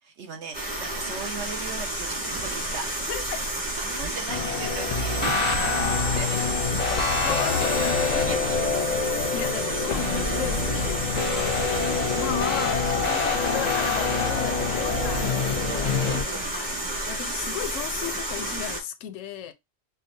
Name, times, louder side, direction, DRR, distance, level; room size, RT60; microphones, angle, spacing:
voice 1, 0.0-3.1 3.8-5.2 5.6-6.5 8.2-8.6 14.2-14.5 15.6-16.5, right 5 dB, 60° right, 1.2 m, -39 dB
sound 1, 0.5-18.8, right 1 dB, 35° right, 1.8 m, -31 dB
voice 2, 3.1-3.4 7.2-8.4 9.3-11.0 11.3-11.9 12.2-16.7 17.1-19.5, left 10 dB, 75° left, 0.9 m, -36 dB
sound 2, 4.3-16.2, left 4 dB, 40° left, 0.7 m, -26 dB
5.0 x 2.2 x 2.6 m
omnidirectional pair, 1.4 m